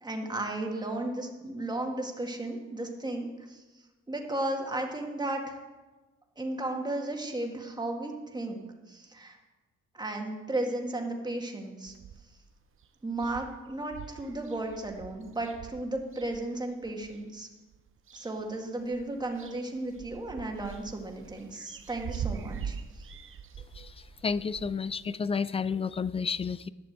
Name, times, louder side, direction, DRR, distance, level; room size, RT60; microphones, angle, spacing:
voice 1, 0.0-3.6 4.1-5.6 6.4-9.4 9.9-11.9 13.0-17.5 18.1-23.1, right 2 dB, 15° right, 2 dB, 2.0 m, -34 dB
sound 1, 11.9-12.5 12.8-12.9 13.1-17.2 17.7-18.6 18.8-24.7, right 7 dB, 45° right, 0.9 m, -43 dB
voice 2, 24.2-26.7, left 5 dB, 20° left, 17 dB, 0.4 m, -31 dB
11.0 x 6.9 x 7.4 m, 1.2 s
cardioid pair, 90°, 29 cm